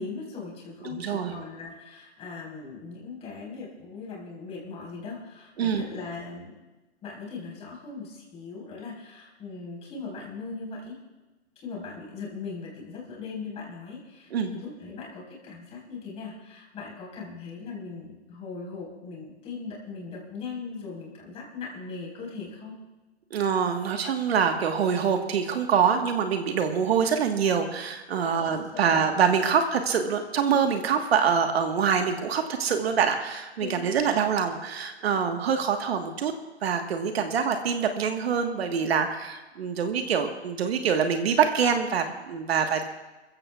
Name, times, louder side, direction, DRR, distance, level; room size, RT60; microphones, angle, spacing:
voice 1, 0.0-6.6 7.0-11.0 11.6-22.8 28.2-29.0 33.6-34.0, left 4 dB, 20° left, -3 dB, 4.3 m, -39 dB
voice 2, 0.9-1.3 5.6-5.8 14.3-14.5 23.3-36.3 36.6-42.9, right 7 dB, 60° right, 5 dB, 1.4 m, -25 dB
28.0 x 15.0 x 2.4 m, 1.1 s
hypercardioid pair, 155°, 34 cm